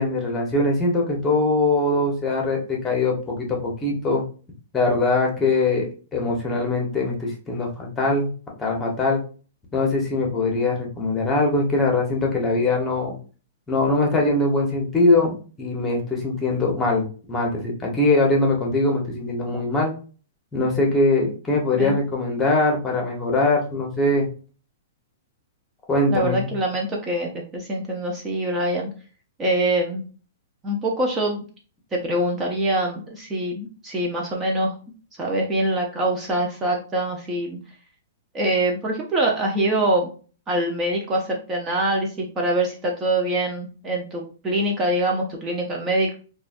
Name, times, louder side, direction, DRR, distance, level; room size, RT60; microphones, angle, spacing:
voice 1, 0.0-4.2 4.7-5.9 6.1-8.3 8.6-9.2 9.7-13.1 13.7-19.9 20.5-24.3 25.9-26.5, left 2 dB, 15° left, 0 dB, 1.0 m, -22 dB
voice 2, 26.1-28.9 29.4-30.0 30.6-31.4 31.9-34.7 35.2-37.6 38.3-40.1 40.5-46.1, right 1 dB, 20° right, -1 dB, 0.6 m, -24 dB
3.0 x 2.3 x 2.5 m, 0.38 s
hypercardioid pair, 130°, 0 cm